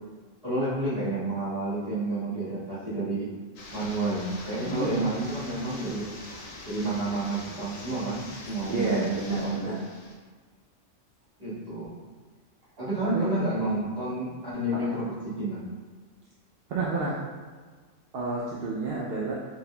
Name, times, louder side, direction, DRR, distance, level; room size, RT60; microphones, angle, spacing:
voice 1, 0.4-3.3 3.7-6.1 6.6-9.8 11.4-12.0 12.8-15.6, right 2 dB, 30° right, -12 dB, 1.6 m, -30 dB
sound 1, 3.6-10.1, left 2 dB, 85° left, 1.1 m, -43 dB
voice 2, 4.7-5.0 8.7-9.8 13.0-13.3 14.7-14.9 16.7-17.2 18.1-19.3, right 3 dB, 60° right, -5 dB, 0.6 m, -29 dB
4.0 x 3.5 x 2.2 m, 1.5 s
omnidirectional pair, 1.3 m